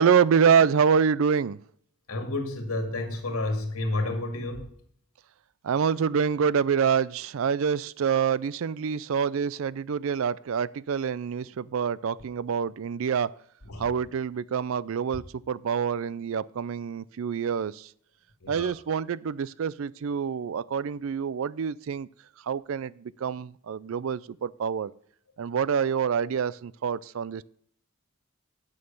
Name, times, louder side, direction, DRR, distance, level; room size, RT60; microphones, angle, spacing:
voice 1, 0.0-1.6 5.6-13.3 13.8-17.9 18.5-22.1 22.4-24.9 25.4-27.4, right 7 dB, 65° right, 21 dB, 0.4 m, -26 dB
voice 2, 2.1-4.7 13.6-13.8 18.4-18.7, left 2 dB, 75° left, 5 dB, 2.2 m, -30 dB
9.5 x 6.5 x 5.4 m, 0.62 s
head